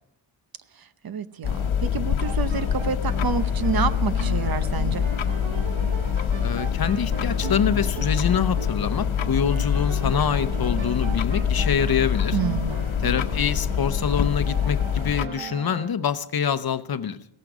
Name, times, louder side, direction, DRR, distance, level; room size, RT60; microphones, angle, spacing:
voice 1, 0.7-5.1 12.3-12.7, right 6 dB, 50° right, 0.8 m, -28 dB
sound 1, 1.4-15.3, left 8 dB, 85° left, 1.1 m, -25 dB
sound 2, 2.2-15.9, right 8 dB, 80° right, 1.0 m, -38 dB
voice 2, 6.4-12.4 13.0-17.2, left 7 dB, 50° left, 0.8 m, -25 dB
16.5 x 14.5 x 4.9 m
wide cardioid pair, 145°, 46 cm